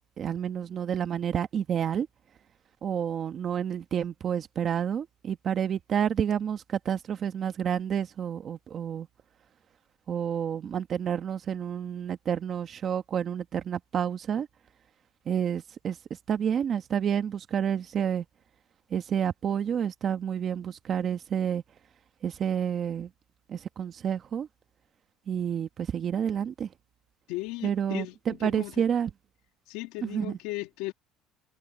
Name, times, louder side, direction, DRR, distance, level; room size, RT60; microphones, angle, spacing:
voice 1, 0.2-2.1 2.8-9.1 10.1-14.5 15.3-16.0 16.3-18.2 18.9-21.6 22.2-23.1 23.5-24.5 25.3-26.7 27.6-29.1 30.0-30.4, right 8 dB, 35° right, 1.5 m, -29 dB
voice 2, 27.3-28.8 29.7-30.9, left 19 dB, 80° left, 2.7 m, -36 dB
cardioid pair, 130°, 0 cm